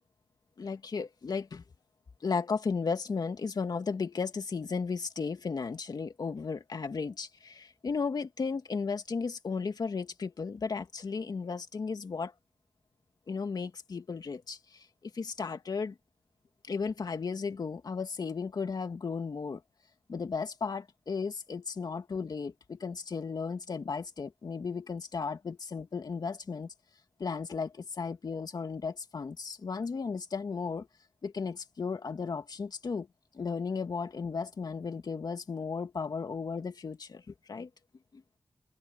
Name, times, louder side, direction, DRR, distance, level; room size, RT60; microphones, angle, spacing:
voice 1, 0.6-1.6 2.2-12.3 13.3-14.9 15.1-15.9 16.7-19.6 20.1-26.7 27.2-30.9 31.2-33.1 33.3-37.7 38.1-38.2, left 5 dB, 75° left, 2.3 m, -35 dB
open air
cardioid pair, 45°, 7 cm